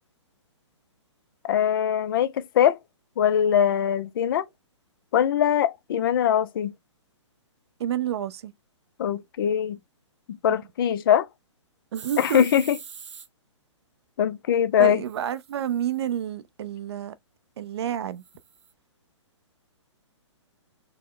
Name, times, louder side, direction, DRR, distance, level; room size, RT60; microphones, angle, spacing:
voice 1, 1.4-2.8 3.2-4.5 5.1-6.7 9.0-9.8 10.4-11.3 12.2-12.8 14.2-15.0, left 9 dB, 45° left, 0.5 m, -22 dB
voice 2, 7.8-8.5 10.5-10.6 11.9-12.4 14.8-17.1 17.6-18.2, right 10 dB, 60° right, 0.5 m, -29 dB
sound 1, 11.9-13.3 15.1-16.1 18.2-18.7, right 6 dB, 75° right, 0.8 m, -43 dB
4.4 x 2.1 x 3.7 m
hypercardioid pair, 135°, 16 cm